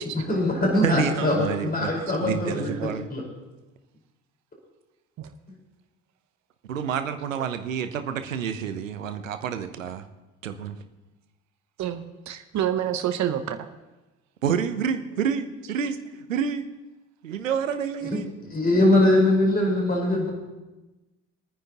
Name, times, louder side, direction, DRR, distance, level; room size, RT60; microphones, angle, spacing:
voice 1, 0.1-1.3 1.6-2.7 3.1-3.2 18.1-18.2 18.5-20.3, left 1 dB, 25° left, -2 dB, 4.9 m, -21 dB
voice 2, 0.7-3.1 6.7-10.1 10.4-10.8 14.4-16.6 17.2-18.3, right 7 dB, 90° right, 10 dB, 0.9 m, -29 dB
voice 3, 11.8-13.7, right 10 dB, 45° right, 8 dB, 1.0 m, -28 dB
25.0 x 9.6 x 3.0 m, 1.1 s
hypercardioid pair, 55°, 38 cm